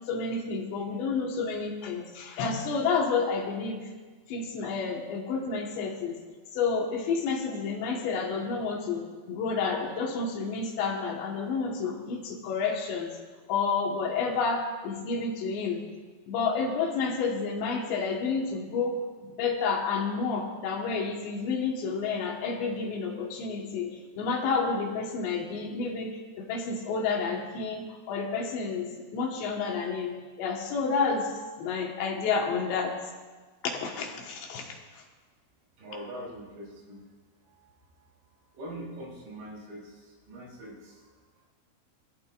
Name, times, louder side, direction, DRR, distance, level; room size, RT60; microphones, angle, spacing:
voice 1, 0.1-3.9 4.3-6.2 6.5-13.1 13.5-15.8 16.3-31.3 31.6-33.0 33.6-34.8, left 5 dB, 80° left, 0 dB, 3.8 m, -30 dB
voice 2, 35.8-37.0 37.4-38.0 38.4-41.1, right 1 dB, 85° right, -3 dB, 5.6 m, -43 dB
22.0 x 13.5 x 2.6 m, 1.4 s
omnidirectional pair, 4.9 m